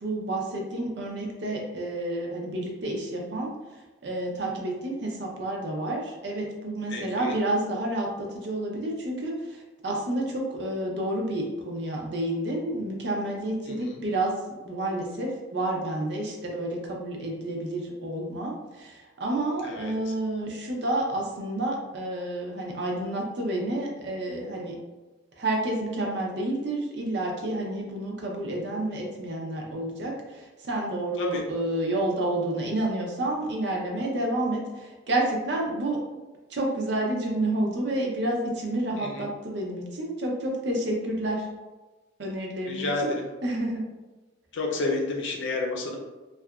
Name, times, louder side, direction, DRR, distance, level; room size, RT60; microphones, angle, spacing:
voice 1, 0.0-3.5 4.0-14.4 14.6-24.8 25.4-36.0 36.5-41.5 42.2-43.1 43.4-43.9, right 1 dB, 55° right, -1 dB, 0.5 m, -29 dB
voice 2, 6.9-7.4 13.7-14.0 19.6-20.1 31.2-31.5 39.0-39.3 42.6-43.3 44.5-46.0, left 3 dB, 70° left, 0 dB, 0.5 m, -30 dB
2.8 x 2.3 x 2.3 m, 1.2 s
head